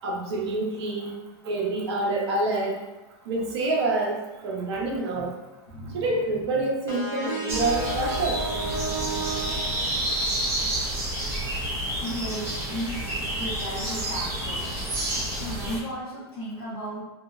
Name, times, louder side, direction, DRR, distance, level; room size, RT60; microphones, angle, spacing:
voice 1, 0.0-1.2 1.4-2.8 3.3-5.3 5.9-8.4, right 2 dB, 80° right, -1 dB, 0.6 m, -27 dB
voice 2, 4.7-5.2 5.7-6.6 12.0-13.1 13.4-14.7 15.3-17.0, equal, 55° left, -8 dB, 0.7 m, -36 dB
sound 1, 6.9-10.4, right 3 dB, 20° left, 0.7 m, -33 dB
sound 2, 7.5-15.8, right 1 dB, 15° right, 0.4 m, -29 dB
2.7 x 2.0 x 2.3 m, 1.1 s
supercardioid pair, 170°, 14 cm